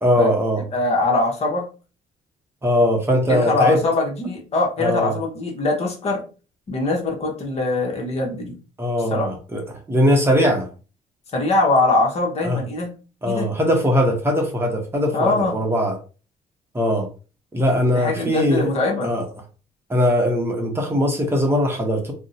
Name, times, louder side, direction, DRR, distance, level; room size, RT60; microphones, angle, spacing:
voice 1, 0.0-0.6 2.6-3.8 4.8-5.2 8.8-10.7 12.4-12.6 13.2-16.0 16.7-17.1 17.5-18.7 19.0-19.3 19.9-22.1, equal, 15° right, 1 dB, 0.7 m, -20 dB
voice 2, 0.7-1.7 3.3-6.2 6.7-8.6 9.1-9.3 11.3-12.9 13.2-13.5 15.1-15.5 17.9-19.1, left 2 dB, 45° left, 1 dB, 0.9 m, -22 dB
2.6 x 2.1 x 3.9 m, 0.35 s
cardioid pair, 130°, 15 cm